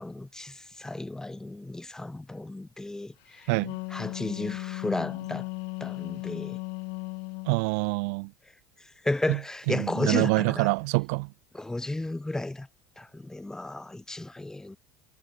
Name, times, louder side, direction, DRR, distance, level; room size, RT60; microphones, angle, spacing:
voice 1, 0.0-3.5 3.9-5.5 5.8-6.6 9.0-10.7 11.5-12.7 13.0-14.8, left 2 dB, 5° left, 1.1 m, -33 dB
Wind instrument woodwind instrument, 3.4-7.6, left 31 dB, 65° left, 1.4 m, -36 dB
voice 2, 7.5-8.3 9.3-9.4 9.7-11.3, right 31 dB, 75° right, 0.6 m, -26 dB
cardioid pair, 145°, 9 cm